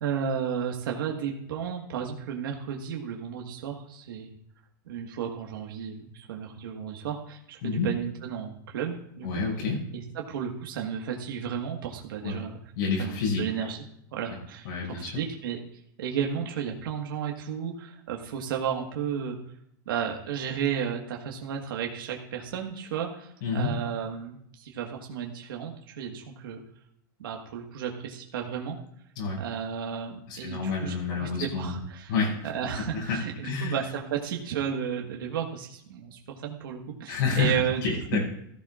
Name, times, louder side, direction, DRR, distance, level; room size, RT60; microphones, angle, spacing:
voice 1, 0.0-4.3 4.9-9.3 9.9-12.6 13.0-13.8 14.1-15.6 16.0-19.4 19.9-26.6 27.2-28.8 29.4-32.1 32.4-37.8, right 8 dB, 85° right, 1 dB, 1.6 m, -33 dB
voice 2, 9.2-9.8 12.2-12.4 12.8-13.7 14.3-14.4 14.6-15.2 23.4-23.7 29.1-29.4 30.3-31.8 32.1-32.5 32.8-33.8 37.1-38.2, left 4 dB, 70° left, -4 dB, 6.2 m, -29 dB
15.0 x 14.5 x 2.5 m, 0.71 s
supercardioid pair, 145°, 11 cm